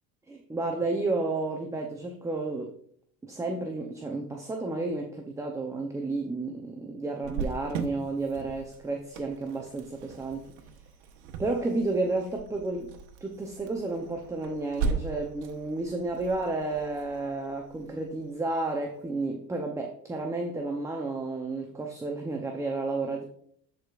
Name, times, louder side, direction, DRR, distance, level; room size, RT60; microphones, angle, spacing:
voice 1, 0.3-2.8 3.2-10.5 11.4-12.9 13.2-23.2, right 3 dB, 10° right, 2 dB, 0.6 m, -31 dB
Cricket, 7.2-18.7, right 5 dB, 65° right, 1.1 m, -38 dB
13.0 x 4.8 x 2.5 m, 0.62 s
supercardioid pair, 130°, 34 cm